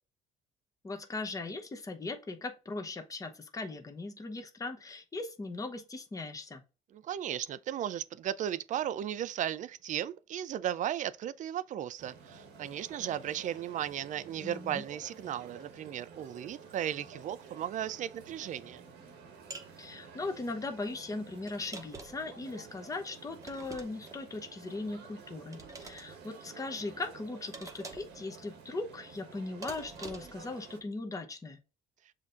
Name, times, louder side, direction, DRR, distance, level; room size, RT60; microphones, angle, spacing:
voice 1, 0.8-6.6 14.4-14.8 19.8-31.6, left 3 dB, 20° left, 0.8 m, -39 dB
voice 2, 6.9-18.8, right 10 dB, 50° right, 0.4 m, -36 dB
sound 1, 12.0-30.8, right 5 dB, 85° right, 1.3 m, -52 dB
sound 2, 19.5-19.7 21.5-22.3 23.4-24.2 25.5-26.1 27.5-28.2 29.6-30.4, right 3 dB, 20° right, 0.9 m, -46 dB
7.2 x 2.8 x 2.5 m
cardioid pair, 110°, 17 cm